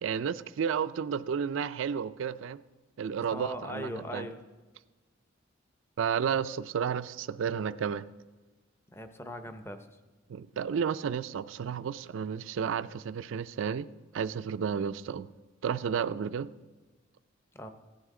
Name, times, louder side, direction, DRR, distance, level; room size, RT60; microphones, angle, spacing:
voice 1, 0.0-2.6 3.0-4.3 6.0-8.1 10.3-13.9 14.1-15.3 15.6-16.5, right 7 dB, 70° right, 0.4 m, -32 dB
voice 2, 3.3-4.4 8.9-9.8 17.5-17.7, left 1 dB, 10° left, 0.6 m, -39 dB
16.0 x 11.0 x 3.7 m
head